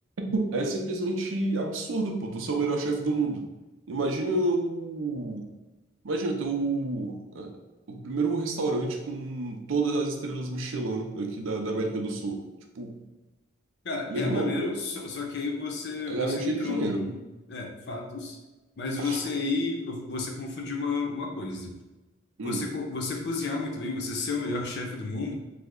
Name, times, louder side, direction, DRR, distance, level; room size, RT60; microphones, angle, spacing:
voice 1, 0.2-3.4 3.9-5.4 6.0-7.5 7.9-12.4 12.8-13.0 14.1-14.6 16.1-17.1 19.0-19.2 22.4-22.6, right 2 dB, 70° right, 2 dB, 0.5 m, -29 dB
voice 2, 13.8-17.2 17.5-18.4 18.8-21.8 22.4-25.3, left 3 dB, 55° left, 1 dB, 0.6 m, -32 dB
3.2 x 2.1 x 3.6 m, 1.1 s
head